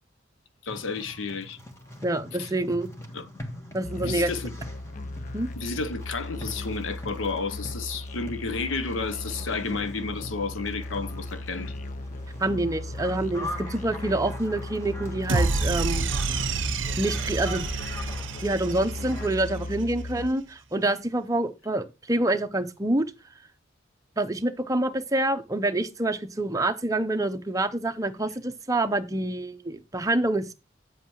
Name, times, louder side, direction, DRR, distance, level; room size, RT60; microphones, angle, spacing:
voice 1, 0.6-1.6 2.4-2.5 3.1-3.3 4.0-4.5 5.6-11.7, left 4 dB, 80° left, 0.7 m, -31 dB
sound 1, 0.7-19.3, left 1 dB, 15° left, 1.4 m, -42 dB
voice 2, 2.0-2.9 3.7-4.3 5.3-5.5 12.4-16.1 17.0-17.7 18.4-23.1 24.2-30.5, right 2 dB, 15° right, 0.7 m, -27 dB
Musical instrument, 3.8-20.3, left 2 dB, 40° left, 0.4 m, -37 dB
sound 2, 15.3-19.6, right 4 dB, 70° right, 0.6 m, -28 dB
8.4 x 8.0 x 3.0 m
head